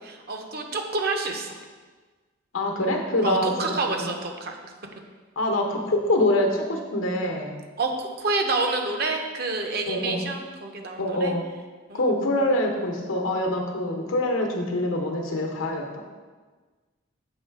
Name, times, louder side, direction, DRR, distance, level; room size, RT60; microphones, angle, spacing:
voice 1, 0.0-1.6 3.2-4.6 7.8-11.3 11.9-12.1, right 3 dB, 50° right, 4 dB, 0.6 m, -28 dB
voice 2, 2.5-4.1 5.4-7.6 9.9-10.2 11.0-11.5 11.9-16.0, left 1 dB, 85° left, 2 dB, 0.9 m, -25 dB
7.1 x 3.1 x 4.7 m, 1.4 s
head